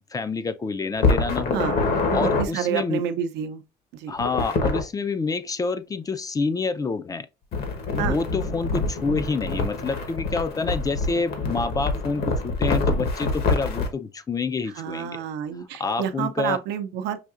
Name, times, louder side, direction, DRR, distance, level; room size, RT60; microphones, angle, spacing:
voice 1, 0.1-1.7 2.1-3.0 4.1-7.3 7.9-15.2 15.8-16.6, left 4 dB, 20° left, 0.3 m, -28 dB
sound 1, 1.0-2.4 4.2-4.8 7.5-13.9, left 3 dB, 70° left, 1.1 m, -25 dB
voice 2, 2.1-3.6 3.9-4.1 8.0-8.2 14.7-17.2, right 9 dB, 90° right, 0.6 m, -29 dB
5.7 x 2.7 x 2.4 m
cardioid pair, 110°, 17 cm